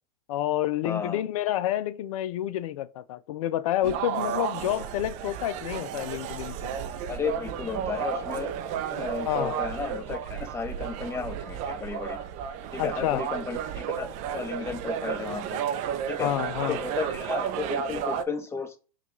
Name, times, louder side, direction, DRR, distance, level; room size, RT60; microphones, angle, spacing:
voice 1, 0.3-6.7 9.2-9.6 12.8-13.2 16.2-16.8, left 13 dB, 65° left, 0.5 m, -29 dB
voice 2, 0.8-1.2 7.1-8.5 8.9-12.2 12.7-15.6 16.1-16.3 16.7-18.8, left 5 dB, 15° left, 0.7 m, -33 dB
sound 1, 3.8-18.2, right 8 dB, 40° right, 0.5 m, -33 dB
5.7 x 2.4 x 3.1 m
hypercardioid pair, 115°, 19 cm